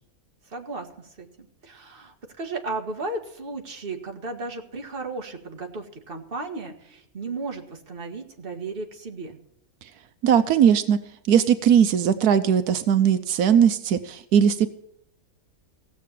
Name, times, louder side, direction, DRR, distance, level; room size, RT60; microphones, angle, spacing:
voice 1, 0.5-1.3 1.6-9.4, right 3 dB, 40° right, 4 dB, 1.9 m, -34 dB
voice 2, 10.2-11.0 11.3-14.7, right 8 dB, 85° right, 11 dB, 1.3 m, -19 dB
16.5 x 7.6 x 7.3 m, 0.76 s
omnidirectional pair, 1.6 m